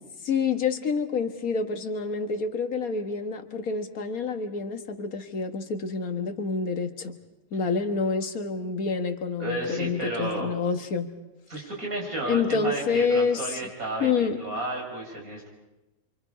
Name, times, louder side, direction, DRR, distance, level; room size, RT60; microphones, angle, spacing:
voice 1, 0.2-7.2 7.5-11.1 11.6-11.7 12.3-13.6 14.0-14.4, left 5 dB, 90° left, 6 dB, 1.9 m, -27 dB
voice 2, 9.4-10.5 11.5-15.5, right 1 dB, 80° right, -1 dB, 6.1 m, -32 dB
27.5 x 25.5 x 5.0 m, 1.0 s
omnidirectional pair, 1.5 m